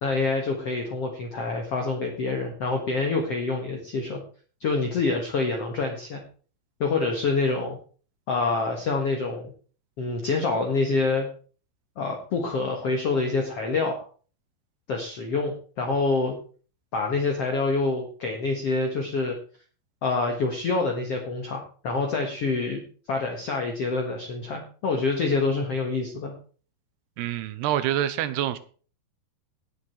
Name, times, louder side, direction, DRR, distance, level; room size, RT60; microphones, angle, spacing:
voice 1, 0.0-4.2 4.6-6.2 6.8-7.8 8.3-9.5 10.0-11.3 12.0-14.0 14.9-16.4 16.9-19.4 20.0-22.8 23.1-26.3, left 3 dB, 55° left, 2 dB, 1.9 m, -26 dB
voice 2, 27.2-28.6, right 12 dB, 80° right, 13 dB, 2.9 m, -26 dB
17.5 x 7.4 x 4.5 m, 0.40 s
omnidirectional pair, 4.8 m